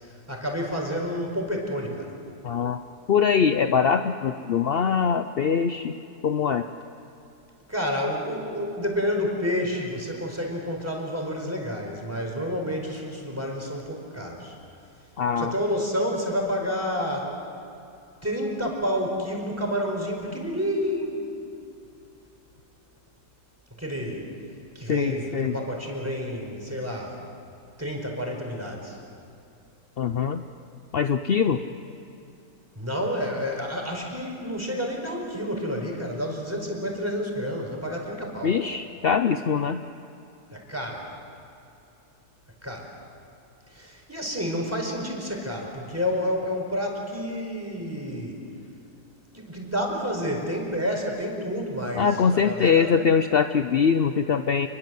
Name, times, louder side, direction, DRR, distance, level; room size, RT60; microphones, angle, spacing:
voice 1, 0.3-2.1 7.7-14.6 15.4-17.4 18.2-21.2 23.8-24.3 24.7-27.2 27.8-29.0 32.7-38.5 40.5-41.1 42.6-42.9 43.7-48.4 49.3-53.0, equal, 10° right, 1 dB, 4.6 m, -29 dB
voice 2, 2.4-2.8 3.1-6.0 6.2-6.7 15.2-15.5 24.9-25.6 30.0-30.4 30.9-31.6 38.4-39.8 51.9-54.7, left 6 dB, 55° left, 8 dB, 0.6 m, -23 dB
28.5 x 22.0 x 7.7 m, 2.7 s
omnidirectional pair, 1.8 m